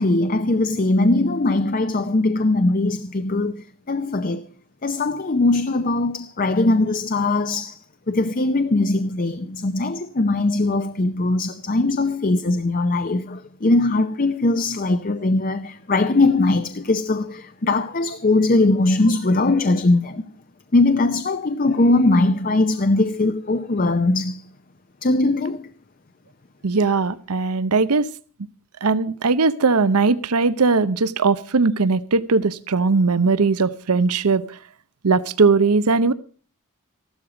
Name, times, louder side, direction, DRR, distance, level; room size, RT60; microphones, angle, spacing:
voice 1, 0.0-4.4 4.8-20.2 20.7-24.4 25.0-25.7, left 2 dB, 40° left, 0.6 m, -20 dB
voice 2, 26.6-28.1 28.8-34.4 35.0-36.1, right 4 dB, 90° right, 0.8 m, -19 dB
15.0 x 12.0 x 5.0 m
head